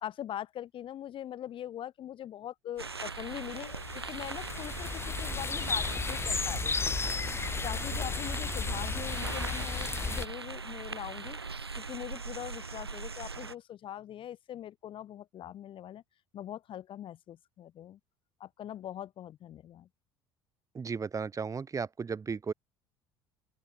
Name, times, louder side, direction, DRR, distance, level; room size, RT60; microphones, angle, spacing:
voice 1, 0.0-7.0 7.6-11.4 11.8-16.0 16.3-18.0 18.4-19.9, left 11 dB, 40° left, 1.4 m, -42 dB
sound 1, 2.8-13.5, right 4 dB, 85° right, 1.0 m, -40 dB
sound 2, 3.2-10.3, left 4 dB, 20° left, 1.8 m, -34 dB
voice 2, 20.7-22.5, right 5 dB, 25° right, 2.2 m, -35 dB
open air
figure-of-eight pair, 60°, 13 cm